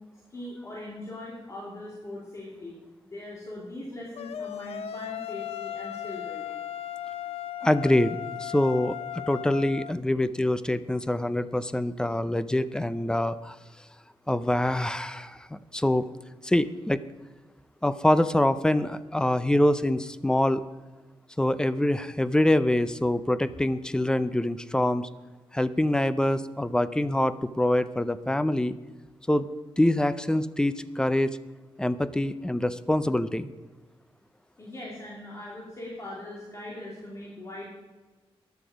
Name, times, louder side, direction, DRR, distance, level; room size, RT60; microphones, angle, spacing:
voice 1, 0.3-2.8 3.0-6.6 34.6-37.7, left 1 dB, 30° left, -4 dB, 2.7 m, -40 dB
sound 1, 4.2-9.9, left 10 dB, 85° left, 0.6 m, -36 dB
voice 2, 7.6-13.6 14.3-16.1 16.4-17.0 17.8-20.6 21.4-25.1 25.5-28.8 29.3-29.5 29.8-31.4 31.8-33.5, left 1 dB, 10° left, 14 dB, 0.5 m, -25 dB
15.0 x 10.5 x 5.0 m, 1.2 s
wide cardioid pair, 150°, 10 cm